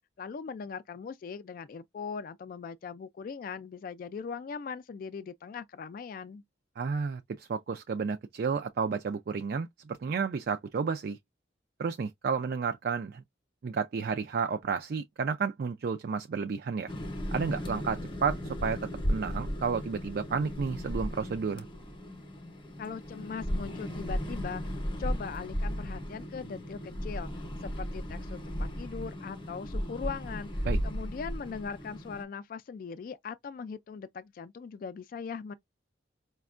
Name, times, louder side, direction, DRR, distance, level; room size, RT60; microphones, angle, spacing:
voice 1, 0.2-6.4 22.8-24.7 25.0-35.5, left 5 dB, 50° left, 0.3 m, -40 dB
voice 2, 6.8-11.2 11.8-13.2 13.6-16.9 17.3-18.8 19.1-21.7 30.6-30.8, right 5 dB, 55° right, 0.3 m, -31 dB
sound 1, 16.9-32.2, equal, 25° left, 0.7 m, -35 dB
5.0 x 2.2 x 2.4 m
head